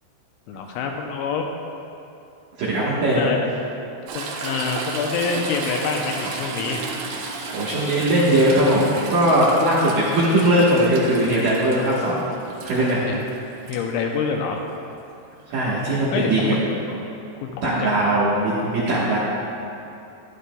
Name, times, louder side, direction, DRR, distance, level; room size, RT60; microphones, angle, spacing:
voice 1, 0.5-1.4 3.2-3.5 4.1-6.9 13.0-13.2 13.7-14.6 16.1-16.6 17.4-18.0, left 5 dB, 80° left, 2 dB, 2.9 m, -26 dB
voice 2, 2.6-3.2 7.5-12.2 12.6-13.0 15.5-16.6 16.9-17.0 17.6-19.2, right 1 dB, 65° right, -9 dB, 2.2 m, -19 dB
Toilet flush / Trickle dribble, 4.1-13.8 15.6-15.7, right 4 dB, 90° right, 3.5 m, -33 dB
12.5 x 11.0 x 2.2 m, 2.7 s
omnidirectional pair, 5.6 m